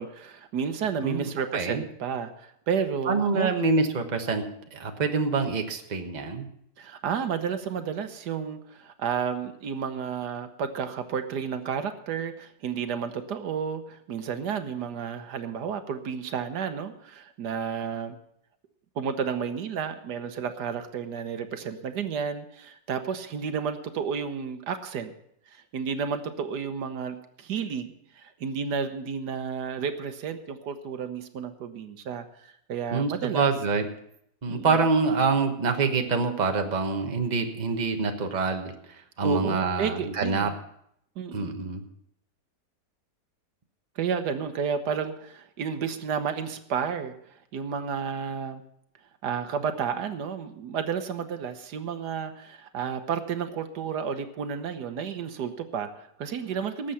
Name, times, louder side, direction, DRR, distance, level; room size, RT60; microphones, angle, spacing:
voice 1, 0.0-3.5 6.8-18.2 19.0-25.1 25.5-33.5 34.5-34.7 39.2-40.5 41.2-41.7 44.0-47.1 47.5-48.6 49.2-56.9, right 7 dB, 80° right, 8 dB, 1.5 m, -31 dB
voice 2, 1.0-1.8 3.1-4.4 4.7-6.5 32.9-33.8 34.4-40.5 41.3-41.8, right 4 dB, 30° right, 4 dB, 1.2 m, -26 dB
18.5 x 7.6 x 5.7 m, 0.73 s
omnidirectional pair, 1.8 m